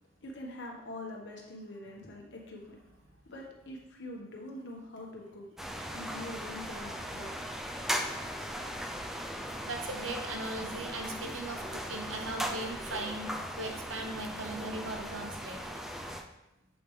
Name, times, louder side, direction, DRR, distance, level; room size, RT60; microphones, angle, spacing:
voice 1, 0.2-2.8 3.2-5.5 5.9-7.7, left 1 dB, 65° left, -1 dB, 1.4 m, -44 dB
sound 1, 5.6-16.2, equal, ahead, 0.5 m, -38 dB
voice 2, 9.7-13.3 13.6-15.6, right 2 dB, 85° right, 3 dB, 1.0 m, -38 dB
7.8 x 5.2 x 3.3 m, 0.94 s
head